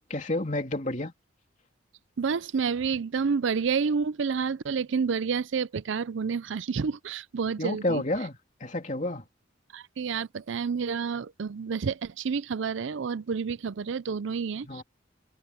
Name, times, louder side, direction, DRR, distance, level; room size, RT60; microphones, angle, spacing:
voice 1, 0.1-1.1 7.6-9.2 14.6-14.8, left 1 dB, 35° left, 3.1 m, -30 dB
voice 2, 2.2-8.0 9.7-14.8, right 5 dB, 70° right, 0.4 m, -29 dB
head